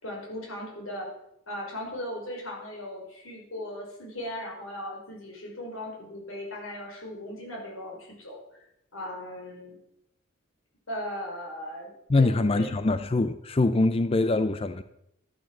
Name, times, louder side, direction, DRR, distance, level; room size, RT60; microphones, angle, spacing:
voice 1, 0.0-1.1 1.5-8.6 8.9-9.8 10.9-12.7, left 1 dB, 90° left, 5.3 m, -38 dB
voice 2, 12.1-14.8, left 2 dB, 30° left, 0.4 m, -23 dB
12.5 x 9.3 x 7.3 m
head